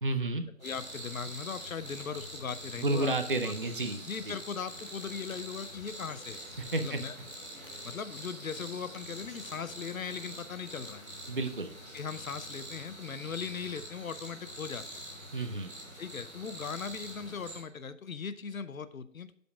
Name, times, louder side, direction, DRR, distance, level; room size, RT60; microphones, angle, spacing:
voice 1, 0.0-0.4 2.8-4.3 6.7-7.0 11.3-11.7 15.3-15.7, right 2 dB, 40° right, 7 dB, 0.6 m, -31 dB
voice 2, 0.6-3.1 3.4-3.5 4.1-6.4 6.8-7.2 7.8-11.0 11.9-15.0 16.0-19.3, left 6 dB, 80° left, 13 dB, 0.7 m, -39 dB
sound 1, 0.6-17.6, right 1 dB, 5° left, 1.6 m, -45 dB
sound 2, 4.6-12.9, left 4 dB, 40° left, 1.4 m, -58 dB
12.0 x 5.2 x 2.4 m, 0.69 s
figure-of-eight pair, 170°, 40 cm